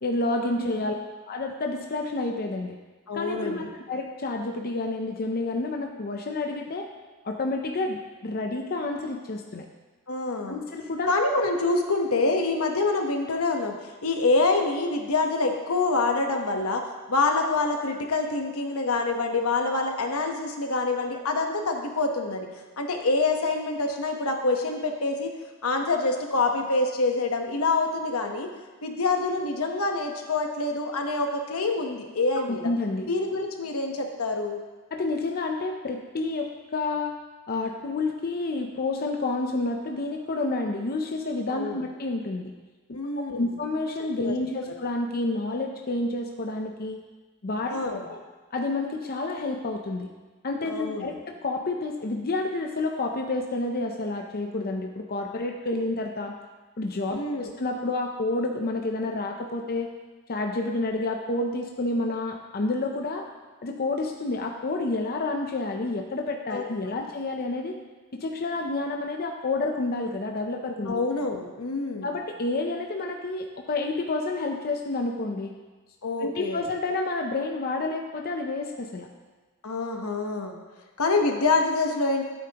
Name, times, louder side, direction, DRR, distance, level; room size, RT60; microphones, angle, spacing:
voice 1, 0.0-1.0 1.3-2.8 3.1-6.9 7.2-9.7 10.5-11.1 32.4-33.1 34.9-37.1 37.5-42.5 42.9-47.0 47.4-48.2 48.5-50.1 50.4-56.3 56.8-59.9 60.3-63.3 63.6-67.8 68.1-71.0 72.0-75.5 76.2-79.1, left 2 dB, 45° left, 2 dB, 0.6 m, -29 dB
voice 2, 3.1-3.7 10.1-10.6 11.1-13.8 14.0-16.8 17.1-22.5 22.8-25.3 25.6-28.5 28.8-32.7 33.1-34.6 41.5-41.8 42.9-43.5 44.2-44.3 47.7-48.0 50.6-51.1 57.1-57.5 66.5-66.6 70.9-72.1 76.0-76.7 79.6-80.5 81.0-82.2, left 3 dB, 80° left, 3 dB, 1.1 m, -26 dB
12.5 x 8.4 x 3.0 m, 1.3 s
head